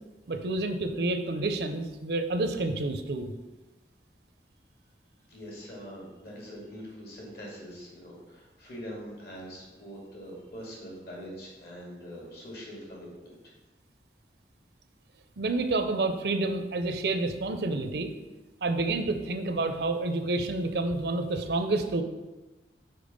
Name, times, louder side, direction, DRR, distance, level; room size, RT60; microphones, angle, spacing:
voice 1, 0.3-3.3 15.4-18.1 18.6-22.0, right 2 dB, 65° right, 7 dB, 0.6 m, -29 dB
voice 2, 5.3-13.4, equal, 55° left, -3 dB, 2.1 m, -43 dB
5.2 x 4.5 x 5.2 m, 1.1 s
head